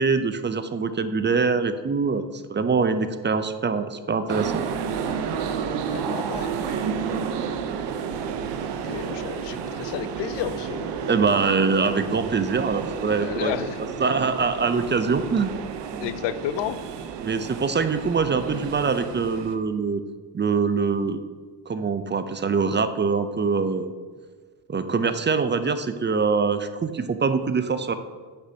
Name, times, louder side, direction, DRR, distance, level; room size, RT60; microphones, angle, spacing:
voice 1, 0.0-4.6 11.1-13.5 14.0-15.5 15.9-16.1 17.2-20.0 20.3-21.2 21.7-23.9 24.7-27.9, right 5 dB, 25° right, 10 dB, 0.5 m, -24 dB
sound 1, 4.3-19.6, right 6 dB, 80° right, 0.8 m, -31 dB
voice 2, 5.6-6.9 8.8-11.0 13.2-13.8 16.0-16.8, left 11 dB, 80° left, 14 dB, 0.5 m, -32 dB
9.4 x 6.9 x 2.8 m, 1.5 s
cardioid pair, 85°, 42 cm